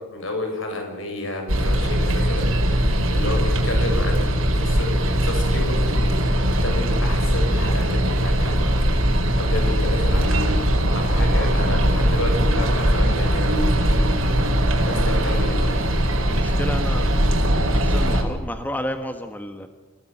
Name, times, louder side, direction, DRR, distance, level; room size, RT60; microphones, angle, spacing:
voice 1, 0.1-4.9 5.2-6.0 6.5-8.7 9.3-10.5 10.9-14.0 14.8-15.7, left 1 dB, 65° left, 3 dB, 7.5 m, -30 dB
sound 1, 1.5-18.2, equal, 75° right, 4.9 m, -20 dB
voice 2, 16.2-17.1 17.7-19.7, left 1 dB, 10° left, 7 dB, 1.3 m, -32 dB
28.0 x 17.5 x 8.5 m, 1.1 s
head